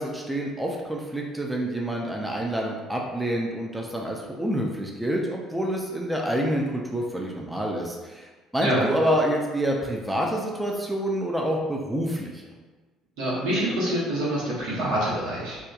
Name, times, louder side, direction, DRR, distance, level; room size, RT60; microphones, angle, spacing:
voice 1, 0.0-8.3 8.5-12.4, right 1 dB, 10° right, 0 dB, 0.3 m, -27 dB
voice 2, 13.2-15.6, right 1 dB, 80° right, -7 dB, 1.0 m, -26 dB
2.7 x 2.2 x 2.3 m, 1.3 s
cardioid pair, 100°, 0 cm